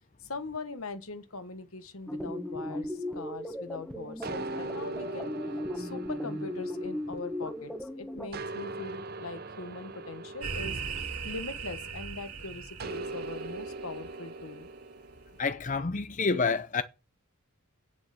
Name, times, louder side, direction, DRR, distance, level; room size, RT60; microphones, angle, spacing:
voice 1, 0.2-5.3 5.7-10.8 11.2-14.7, left 3 dB, 70° left, 1.4 m, -41 dB
sound 1, 2.1-8.3, left 1 dB, 5° left, 1.2 m, -37 dB
sound 2, 4.2-7.8 8.3-12.0 12.8-15.5, right 2 dB, 45° right, 0.8 m, -41 dB
sound 3, 10.4-14.3, right 5 dB, 85° right, 2.5 m, -39 dB
voice 2, 15.4-16.8, left 4 dB, 35° left, 0.6 m, -28 dB
9.1 x 7.1 x 6.5 m
head